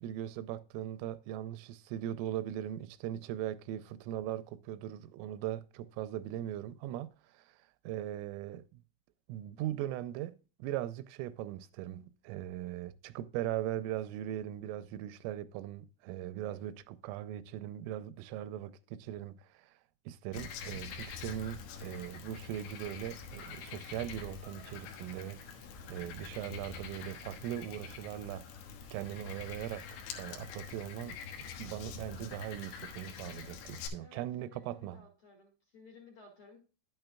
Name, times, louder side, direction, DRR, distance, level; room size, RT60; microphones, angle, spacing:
voice 1, 0.0-7.6 7.8-8.8 9.3-19.7 20.1-28.5 28.9-35.1, right 12 dB, 85° right, 3.1 m, -40 dB
Frog, 20.3-33.9, left 6 dB, 85° left, 3.7 m, -45 dB
voice 2, 34.0-36.6, left 4 dB, 70° left, 1.3 m, -57 dB
11.0 x 9.0 x 2.2 m
omnidirectional pair, 5.7 m